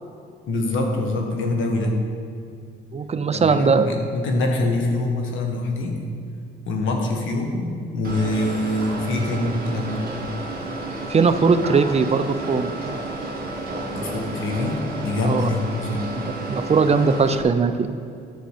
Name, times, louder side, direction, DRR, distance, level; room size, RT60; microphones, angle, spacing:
voice 1, 0.5-2.0 3.3-6.0 6.6-10.1 13.9-16.1, left 2 dB, 80° left, 2 dB, 1.5 m, -24 dB
voice 2, 2.9-3.9 11.1-12.7 15.2-15.5 16.5-17.9, right 5 dB, 35° right, 10 dB, 0.5 m, -19 dB
sound 1, 8.0-17.4, right 2 dB, 50° right, 2.5 m, -31 dB
10.5 x 6.3 x 5.0 m, 2.5 s
cardioid pair, 90°, 20 cm